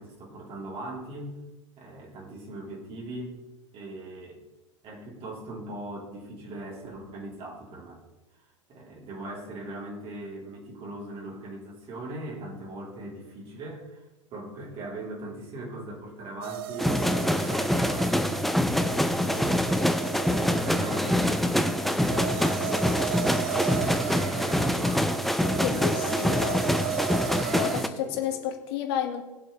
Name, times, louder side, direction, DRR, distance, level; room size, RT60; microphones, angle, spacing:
voice 1, 0.0-1.4 1.8-3.4 3.7-4.4 4.8-8.0 8.7-18.7 19.0-25.1 25.6-26.4 26.7-26.9 27.9-28.2, right 1 dB, 35° right, -2 dB, 3.5 m, -40 dB
sound 1, 16.4-27.8, right 12 dB, 50° right, 0.8 m, -35 dB
sound 2, 16.8-27.9, left 1 dB, ahead, 0.6 m, -25 dB
voice 2, 25.6-26.6 27.5-29.2, left 9 dB, 50° left, 6 dB, 1.8 m, -31 dB
20.5 x 7.7 x 3.3 m, 1.1 s
figure-of-eight pair, 90°, 16 cm